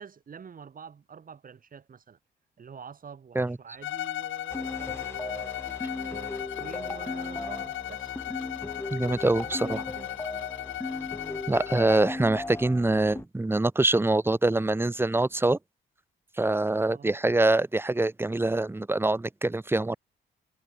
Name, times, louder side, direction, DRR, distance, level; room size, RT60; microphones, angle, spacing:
voice 1, 0.0-2.2 2.6-5.6 5.9-8.2 9.5-10.3 16.8-17.2, right 6 dB, 45° right, 4.8 m, -46 dB
Bowed string instrument, 3.8-12.1, left 13 dB, 80° left, 3.7 m, -36 dB
sound 1, 4.5-13.2, left 2 dB, 10° left, 1.9 m, -37 dB
voice 2, 8.9-9.8 11.5-15.6 16.4-20.0, right 2 dB, 10° right, 1.2 m, -24 dB
cardioid pair, 90°, 20 cm